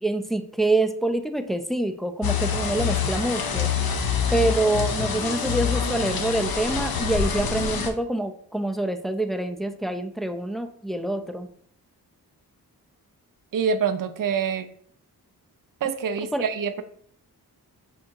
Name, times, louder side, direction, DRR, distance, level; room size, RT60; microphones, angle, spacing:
voice 1, 0.0-3.7 4.3-11.5 16.3-16.4, right 2 dB, ahead, 6 dB, 0.4 m, -26 dB
sound 1, 2.2-7.9, left 6 dB, 65° left, 0.7 m, -26 dB
voice 2, 13.5-14.7 15.8-16.8, right 6 dB, 55° right, 9 dB, 0.5 m, -25 dB
3.6 x 2.7 x 4.4 m, 0.63 s
cardioid pair, 55°, 38 cm